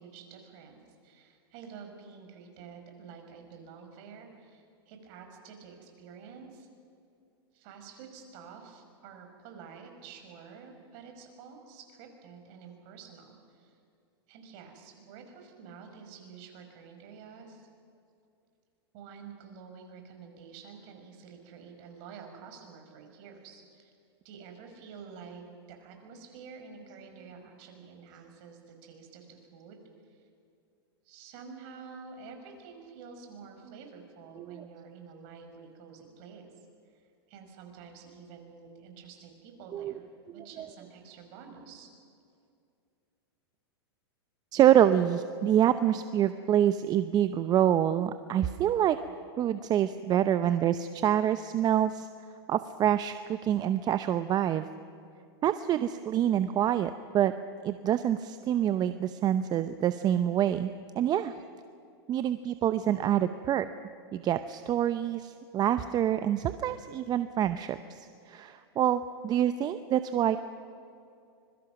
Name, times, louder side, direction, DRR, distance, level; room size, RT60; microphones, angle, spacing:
voice 1, 0.0-6.7 7.5-13.8 14.3-17.7 18.9-23.9 24.2-29.8 30.1-30.2 31.1-36.5 36.9-41.9, right 6 dB, 50° right, 4 dB, 5.1 m, -49 dB
voice 2, 40.3-40.7 44.5-49.0 49.4-52.1 52.5-54.7 55.4-57.3 57.6-60.7 61.0-61.3 62.1-63.7 64.1-70.4, right 10 dB, 30° right, 11 dB, 0.7 m, -26 dB
25.0 x 22.5 x 6.0 m, 2.5 s
hypercardioid pair, 115°, 14 cm